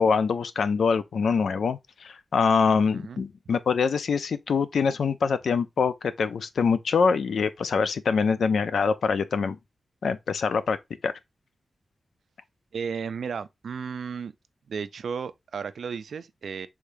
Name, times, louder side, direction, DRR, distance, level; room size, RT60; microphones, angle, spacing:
voice 1, 0.0-9.6 10.0-10.8 11.0-11.1, left 5 dB, 85° left, 0.5 m, -24 dB
voice 2, 2.9-3.2 12.7-14.3 14.7-16.7, right 6 dB, 85° right, 0.4 m, -34 dB
4.9 x 3.5 x 2.6 m
wide cardioid pair, 150°, 0 cm